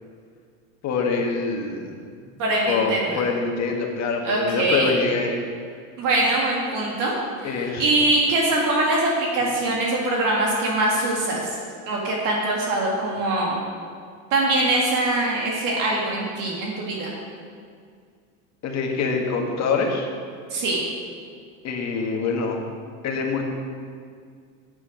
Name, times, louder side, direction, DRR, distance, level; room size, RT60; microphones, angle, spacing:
voice 1, 0.8-2.0 2.7-5.4 7.4-7.9 18.6-20.1 21.6-22.6 23.0-23.4, left 4 dB, 40° left, 1 dB, 1.6 m, -25 dB
voice 2, 2.4-3.2 4.2-5.0 6.0-11.6 11.9-13.6 14.3-17.1 20.5-20.8, right 2 dB, 50° right, -2 dB, 2.0 m, -23 dB
8.4 x 8.0 x 5.1 m, 2.1 s
supercardioid pair, 120°, 42 cm